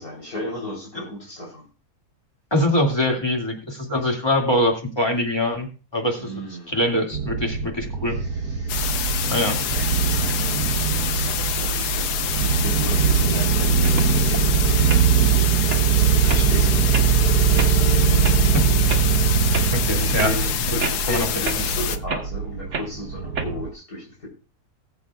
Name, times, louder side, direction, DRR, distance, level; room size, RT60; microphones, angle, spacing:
voice 1, 0.0-1.7 6.2-6.8 8.2-17.4 19.4-24.3, left 1 dB, 65° left, -4 dB, 4.2 m, -36 dB
voice 2, 2.5-8.2 9.3-9.6 18.5-18.7 19.7-20.3 20.7-20.8 21.1-21.3 21.5-21.6, left 1 dB, 15° left, 1 dB, 2.3 m, -23 dB
sound 1, 7.1-23.7, right 7 dB, 80° right, 1.3 m, -21 dB
sound 2, 8.7-22.0, left 10 dB, 85° left, 1.2 m, -27 dB
sound 3, 13.8-14.4 14.8-15.0 15.5-15.8 16.3-16.5 16.9-17.1 17.6-17.7 18.2-18.4 18.9-19.0 19.5-19.7 20.2-20.3 20.8-21.1 21.4-21.6 22.1-22.2 22.7-22.9 23.4-23.5, right 4 dB, 50° right, 1.6 m, -29 dB
20.0 x 7.8 x 2.4 m, 0.35 s
omnidirectional pair, 1.7 m